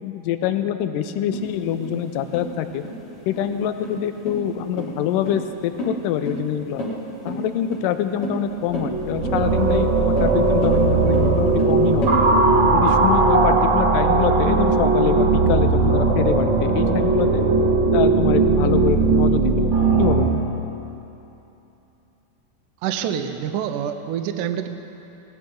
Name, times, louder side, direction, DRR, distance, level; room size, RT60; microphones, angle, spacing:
voice 1, 0.0-2.8 3.3-6.8 7.3-12.2 12.7-17.4 17.9-19.7 20.0-20.5, left 9 dB, 80° left, 9 dB, 2.2 m, -25 dB
sound 1, 1.3-12.2, left 1 dB, 45° left, 2.7 m, -32 dB
sound 2, 8.6-20.2, right 3 dB, 45° right, 1.9 m, -18 dB
voice 2, 22.8-24.7, right 9 dB, 75° right, 7 dB, 2.1 m, -26 dB
19.5 x 17.5 x 3.8 m, 3.0 s
omnidirectional pair, 3.9 m